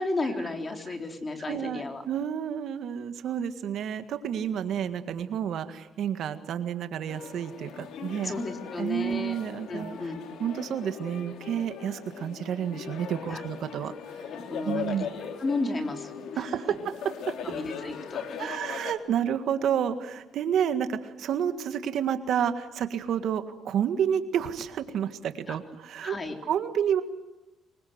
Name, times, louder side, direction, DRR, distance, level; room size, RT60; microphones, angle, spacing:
voice 1, 0.0-2.0 8.2-9.4 9.7-10.2 13.3-13.4 14.3-15.1 15.4-16.4 17.4-18.6 25.5-25.6 26.0-26.3, left 2 dB, 35° left, 4 dB, 3.7 m, -33 dB
voice 2, 1.5-8.3 8.7-9.9 10.4-13.9 14.6-15.1 16.4-16.9 17.2-17.4 18.4-26.2 26.4-27.0, right 9 dB, 75° right, 9 dB, 1.8 m, -30 dB
sound 1, 7.1-18.9, left 7 dB, 85° left, 2.7 m, -39 dB
24.5 x 22.5 x 8.0 m, 1.0 s
cardioid pair, 90°, 0 cm